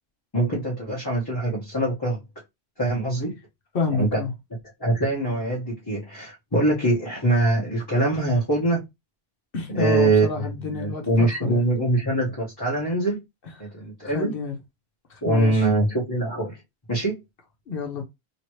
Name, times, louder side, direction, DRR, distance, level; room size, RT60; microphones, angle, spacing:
voice 1, 0.3-2.2 2.8-3.3 4.0-4.2 4.8-8.8 9.7-10.3 10.7-13.2 13.6-14.3 15.2-16.6 16.9-17.2, right 2 dB, 25° left, 1.2 m, -23 dB
voice 2, 3.7-4.3 9.5-11.6 14.0-14.6 15.1-15.7 17.7-18.0, left 4 dB, 60° left, 1.1 m, -29 dB
3.1 x 2.9 x 3.1 m
omnidirectional pair, 1.1 m